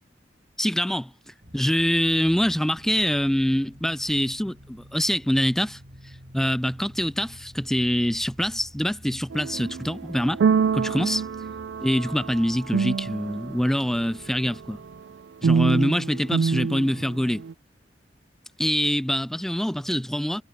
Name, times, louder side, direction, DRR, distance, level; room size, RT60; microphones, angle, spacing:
voice 1, 0.6-1.1 1.5-5.8 6.0-10.4 10.7-11.2 11.8-14.8 15.4-17.4 18.6-20.4, equal, ahead, 0.3 m, -25 dB
sound 1, 1.4-15.0, equal, 55° right, 6.1 m, -49 dB
sound 2, 9.3-13.6 15.4-17.5, right 5 dB, 85° right, 0.4 m, -26 dB
head